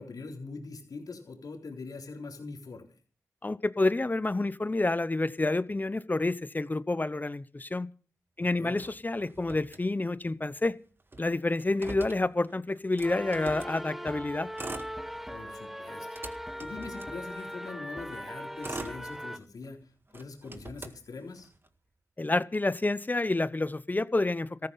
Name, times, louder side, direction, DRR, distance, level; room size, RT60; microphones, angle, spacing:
voice 1, 0.0-2.9 8.4-8.8 15.3-16.1 16.6-21.5, left 3 dB, 75° left, 3.7 m, -43 dB
voice 2, 3.4-7.9 8.4-10.7 11.2-14.5 22.2-24.7, left 2 dB, 25° left, 0.8 m, -29 dB
Motor vehicle (road), 8.7-10.4 10.7-10.8 11.0-13.8 14.4-15.5 15.9-17.7 18.3-19.7 20.1-21.7, right 2 dB, 35° right, 1.8 m, -44 dB
sound 1, 13.0-19.4, equal, 5° right, 1.0 m, -40 dB
14.5 x 12.5 x 5.7 m
cardioid pair, 55°, 7 cm